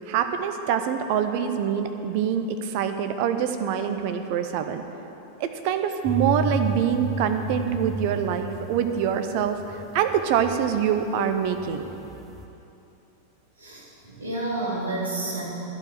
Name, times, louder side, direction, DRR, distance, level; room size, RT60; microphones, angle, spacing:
voice 1, 0.1-4.8 5.4-11.8, right 8 dB, 45° right, 7 dB, 0.6 m, -25 dB
sound 1, 6.0-11.1 11.3-12.4, right 2 dB, 10° right, 0.7 m, -33 dB
voice 2, 13.6-15.4, right 2 dB, 75° right, -5 dB, 2.2 m, -30 dB
11.5 x 4.8 x 7.3 m, 3.0 s
figure-of-eight pair, 90°, 0 cm